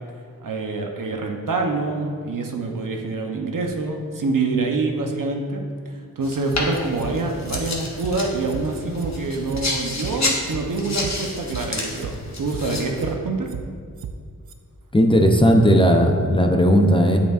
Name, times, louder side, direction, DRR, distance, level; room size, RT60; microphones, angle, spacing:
voice 1, 0.4-5.6 6.2-13.5, right 3 dB, 65° right, 2 dB, 0.9 m, -26 dB
sound 1, 6.2-13.1, left 2 dB, 50° left, 1.3 m, -30 dB
sound 2, 6.5-7.1 7.5-7.6 8.0-8.1 8.5-9.1 9.5-9.6 10.0-10.1 10.5-11.1 11.5-11.6 12.0-12.1 12.5-13.1 13.5-13.6 14.0-14.1 14.5-14.6, right 8 dB, 85° right, 0.5 m, -33 dB
voice 2, 14.9-17.2, equal, 15° left, 3 dB, 0.6 m, -16 dB
8.1 x 6.9 x 2.5 m, 2.1 s
cardioid pair, 55°, 35 cm